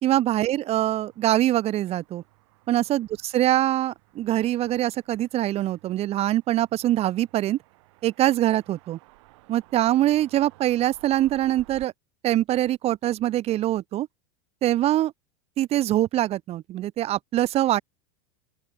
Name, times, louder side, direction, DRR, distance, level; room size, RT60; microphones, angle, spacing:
voice 1, 0.0-2.2 2.7-7.6 8.0-9.0 9.5-11.9 12.2-14.1 14.6-15.1 15.6-17.8, right 14 dB, 40° right, 1.2 m, -23 dB
sound 1, 0.7-11.9, right 23 dB, 65° right, 4.1 m, -55 dB
open air
hypercardioid pair, 105°, 16 cm